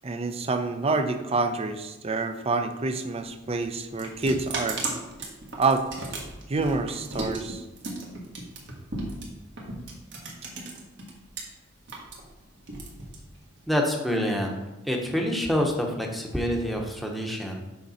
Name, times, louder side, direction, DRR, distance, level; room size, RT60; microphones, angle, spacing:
voice 1, 0.0-4.8 5.6-5.9 6.5-7.6, right 3 dB, 30° right, 8 dB, 0.5 m, -27 dB
sound 1, 3.3-11.4 11.7-13.7, right 2 dB, 60° right, 1.5 m, -36 dB
voice 2, 13.7-14.5 14.8-17.6, equal, ahead, 1 dB, 0.9 m, -27 dB
6.5 x 5.3 x 4.2 m, 1.0 s
head